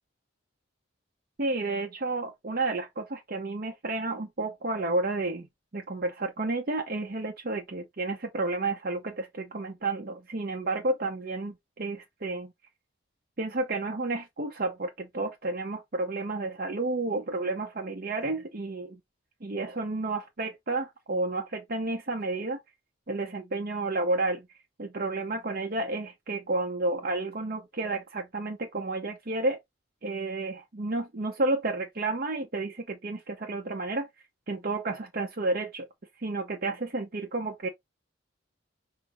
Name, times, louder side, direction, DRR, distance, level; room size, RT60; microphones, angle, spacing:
voice 1, 1.4-5.5 5.7-12.5 13.4-19.0 19.4-22.6 23.1-24.5 24.8-29.6 30.0-34.1 34.5-35.9 36.2-37.7, right 2 dB, 45° right, 0.7 m, -31 dB
6.2 x 2.2 x 3.8 m
head